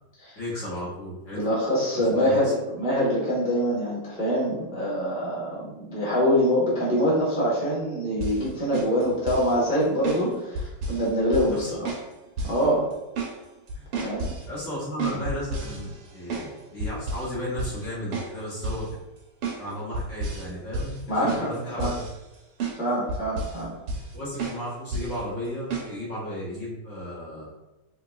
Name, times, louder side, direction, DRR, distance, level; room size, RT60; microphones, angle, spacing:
voice 1, 0.4-1.4 1.9-2.5 11.5-11.8 13.7-13.8 14.5-19.0 19.6-22.1 24.1-27.5, left 1 dB, 45° left, -8 dB, 1.1 m, -34 dB
voice 2, 1.3-11.9 12.4-12.8 14.0-14.3 21.1-21.5 21.8-21.9 22.8-23.7, equal, 10° right, -7 dB, 0.4 m, -24 dB
sound 1, 8.2-8.4 8.7-9.5 10.0-10.2 10.5-11.1 11.3-11.6 11.8-12.1 12.4-12.6 12.9-13.3 13.7-14.4 15.0-16.5 16.8-17.3 17.6-17.8 18.1-18.3 18.6-18.9 19.4-19.6 19.9-20.5 20.7-21.0 21.3-22.3 22.6-22.8 23.1-23.6 23.9-24.1 24.4-24.6 24.9-25.2 25.7-25.9, right 3 dB, 70° right, 1.6 m, -31 dB
3.8 x 3.4 x 2.3 m, 1.0 s
omnidirectional pair, 2.3 m